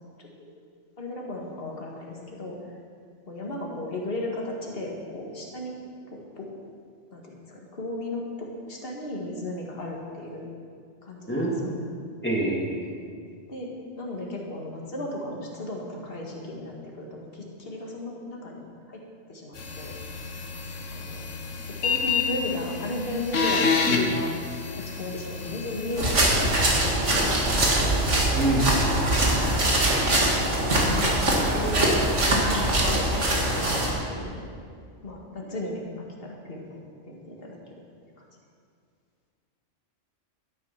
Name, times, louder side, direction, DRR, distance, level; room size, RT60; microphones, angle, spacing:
voice 1, 1.0-2.6 3.3-5.7 6.1-6.5 7.1-10.4 11.0-11.8 13.2-18.6 18.9-19.0 19.3-19.9 20.9-21.2 21.6-24.3 24.7-26.3 26.6-27.7 29.6-29.7 30.0-30.5 30.9-31.9 32.5-34.5 35.0-36.8 37.0-37.6, left 2 dB, 50° left, -1 dB, 2.2 m, -35 dB
voice 2, 11.3-11.7 12.2-12.9 28.3-28.7, right 2 dB, 10° left, -4 dB, 2.7 m, -25 dB
sound 1, 19.6-26.8, left 5 dB, 85° left, 1.6 m, -29 dB
sound 2, 26.0-33.9, right 1 dB, 70° right, 2.4 m, -22 dB
12.5 x 11.5 x 5.9 m, 2.2 s
omnidirectional pair, 1.3 m